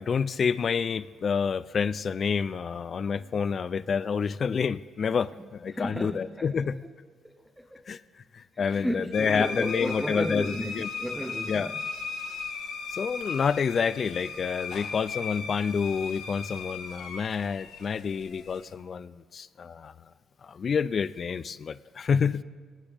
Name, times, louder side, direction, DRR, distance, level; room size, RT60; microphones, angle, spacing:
voice 1, 0.0-6.8 7.9-8.0 8.3-10.9 11.5-11.7 12.9-19.9 20.4-22.4, left 6 dB, 45° left, 16 dB, 0.4 m, -28 dB
voice 2, 5.7-6.7 7.2-7.9 8.5-11.8, equal, 5° right, 4 dB, 0.8 m, -34 dB
sound 1, 9.1-18.7, left 4 dB, 85° left, 1.7 m, -37 dB
26.0 x 9.4 x 3.5 m, 1.5 s
cardioid pair, 90°, 0 cm